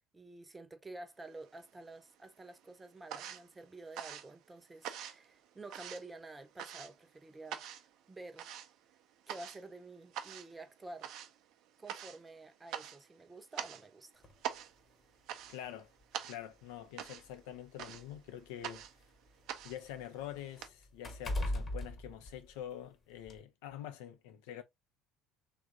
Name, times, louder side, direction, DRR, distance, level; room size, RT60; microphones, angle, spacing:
voice 1, 0.0-7.6 8.1-8.5 9.3-11.2 11.8-14.2, right 2 dB, 15° right, 0.8 m, -50 dB
sound 1, 1.3-2.1 2.4-20.7, right 10 dB, 55° right, 0.6 m, -46 dB
sound 2, 14.2-14.4 15.4-15.5 16.0-16.1 17.1-19.0 19.4-22.9 23.3-23.4, left 1 dB, 30° left, 1.2 m, -40 dB
voice 2, 15.5-15.9 16.3-18.9 19.6-24.6, left 11 dB, 65° left, 0.6 m, -46 dB
3.3 x 2.5 x 3.7 m
figure-of-eight pair, 65°, 0 cm